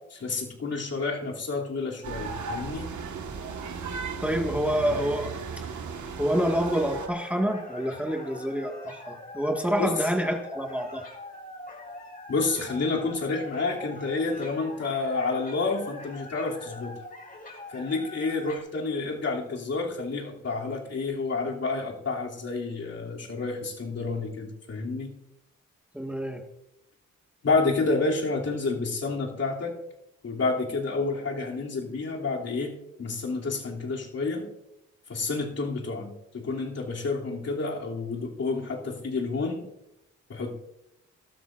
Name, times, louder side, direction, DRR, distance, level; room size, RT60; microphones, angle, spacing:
voice 1, 0.1-2.9 9.8-9.9 12.3-17.0 17.7-25.1 27.4-29.8 30.2-34.5 35.1-39.6 40.3-40.5, left 3 dB, 50° left, -2 dB, 3.0 m, -29 dB
sound 1, 2.0-7.1, right 5 dB, 65° right, 1.7 m, -36 dB
voice 2, 4.2-5.7 6.2-11.0 25.9-26.4, equal, 5° right, 2 dB, 1.8 m, -27 dB
sound 2, 6.3-18.6, left 2 dB, 30° left, 4.2 m, -44 dB
18.0 x 13.0 x 2.6 m, 0.87 s
supercardioid pair, 55°, 31 cm